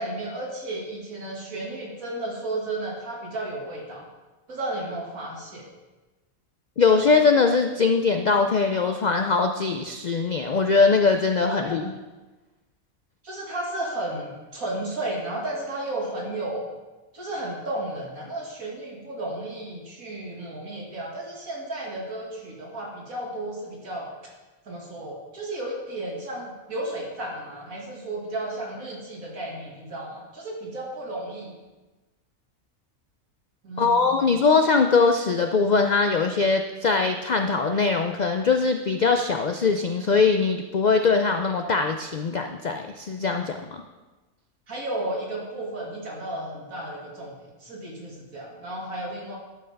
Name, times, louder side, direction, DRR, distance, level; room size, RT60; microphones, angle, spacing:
voice 1, 0.0-4.1 4.5-5.7 11.5-11.8 13.2-16.7 17.1-24.1 24.6-31.5 33.6-34.4 44.7-49.4, right 1 dB, 80° right, -2 dB, 2.7 m, -33 dB
voice 2, 6.8-11.9 33.8-43.8, left 4 dB, 85° left, 6 dB, 0.4 m, -21 dB
12.0 x 5.7 x 5.2 m, 1.2 s
omnidirectional pair, 1.4 m